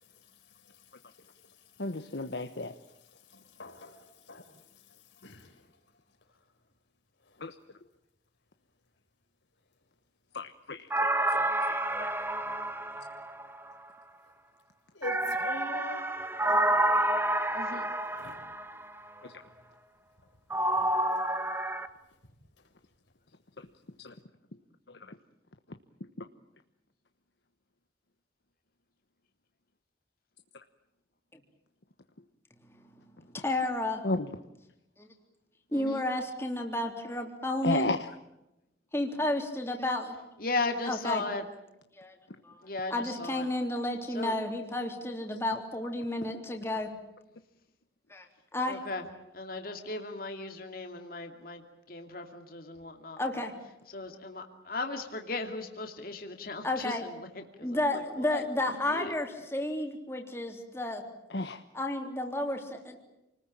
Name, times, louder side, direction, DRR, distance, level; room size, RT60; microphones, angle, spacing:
voice 1, 1.8-2.7 7.4-7.5 10.3-11.8 24.0-24.1 34.0-34.2 37.6-38.0 61.3-61.6, left 2 dB, 70° left, 8 dB, 1.2 m, -33 dB
voice 2, 3.6-3.9 4.3-4.4 5.2-5.4 14.9-16.1 16.5-16.7 18.2-18.3, left 1 dB, 85° left, 4 dB, 4.8 m, -41 dB
sound 1, 10.9-13.7 15.0-18.8 20.5-21.9, right 1 dB, 10° right, 1.2 m, -29 dB
voice 3, 33.3-34.0 35.0-35.1 35.7-37.9 38.9-40.2 40.9-41.2 42.0-42.2 42.4-42.6 42.9-46.9 48.1-48.3 48.5-48.8 53.2-53.5 56.6-57.1 57.6-61.0 61.7-63.0, left 1 dB, 15° left, 2 dB, 3.3 m, -32 dB
voice 4, 35.7-36.0 40.4-41.4 42.6-43.4 44.1-44.3 48.7-49.0 49.3-51.6 51.9-53.2 53.9-59.1, left 3 dB, 50° left, 4 dB, 2.6 m, -37 dB
29.0 x 20.0 x 8.9 m, 0.91 s
head